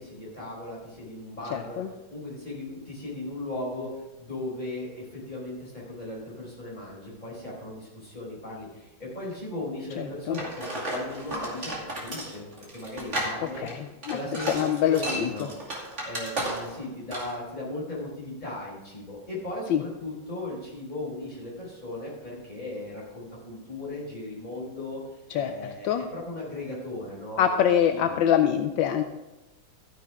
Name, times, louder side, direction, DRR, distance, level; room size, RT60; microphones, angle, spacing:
voice 1, 0.0-1.8 2.1-3.9 4.2-11.7 12.0-12.4 12.7-13.7 14.1-14.5 14.8-15.5 16.0-25.0 25.3-27.6 27.9-28.2, left 2 dB, 20° left, -5 dB, 4.8 m, -37 dB
voice 2, 1.5-1.9 10.0-10.4 13.6-15.5 19.7-19.8 25.3-26.1 27.4-29.0, left 9 dB, 80° left, 7 dB, 1.3 m, -25 dB
sound 1, 10.3-16.8 17.1-17.4, right 1 dB, 35° right, 2.8 m, -33 dB
13.5 x 10.0 x 3.6 m, 1.0 s
omnidirectional pair, 2.1 m